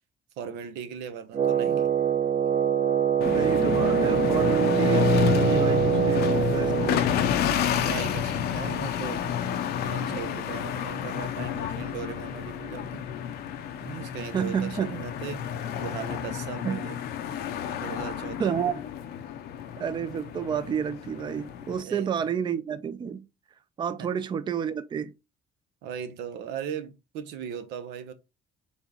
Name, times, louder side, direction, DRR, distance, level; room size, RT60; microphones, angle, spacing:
voice 1, 0.4-1.9 7.8-9.3 9.8-13.1 13.8-15.5 15.8-17.0 17.7-18.7 21.8-22.1 24.0-24.1 25.8-28.1, right 8 dB, 90° right, 0.7 m, -38 dB
Wind instrument woodwind instrument, 1.3-7.0, right 9 dB, 50° right, 0.7 m, -24 dB
sound 1, 3.2-21.8, left 8 dB, 70° left, 0.6 m, -29 dB
voice 2, 3.2-7.0 14.3-14.9 16.6-16.8 18.4-18.8 19.8-23.3 23.8-25.1, right 7 dB, 25° right, 0.4 m, -30 dB
4.3 x 3.4 x 2.8 m
cardioid pair, 110°, 17 cm